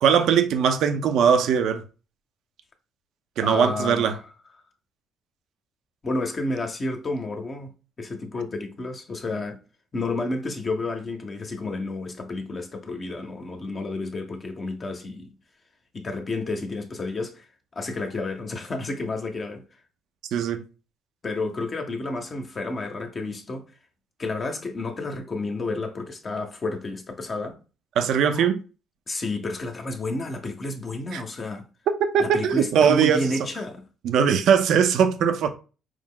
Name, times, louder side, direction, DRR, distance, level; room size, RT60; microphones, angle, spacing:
voice 1, 0.0-1.8 3.4-4.2 20.3-20.6 28.0-28.6 31.1-31.2 32.1-33.2 34.0-35.5, right 7 dB, 70° right, 0.6 m, -20 dB
voice 2, 3.4-4.2 6.0-9.6 9.9-15.3 15.9-17.5 17.7-19.6 21.2-23.6 24.2-27.6 28.3-28.5 29.1-31.7 32.2-33.9, left 2 dB, 35° left, 0.7 m, -31 dB
4.7 x 2.0 x 3.7 m
cardioid pair, 85°, 0 cm